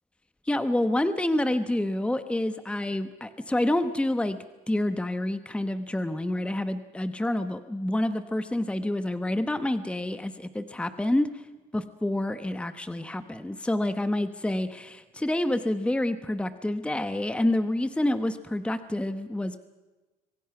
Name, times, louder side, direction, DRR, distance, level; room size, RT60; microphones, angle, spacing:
voice 1, 0.5-4.4 4.7-11.4 11.7-19.6, left 1 dB, 5° left, 11 dB, 1.1 m, -28 dB
26.0 x 23.0 x 5.9 m, 1.2 s
cardioid pair, 110°, 17 cm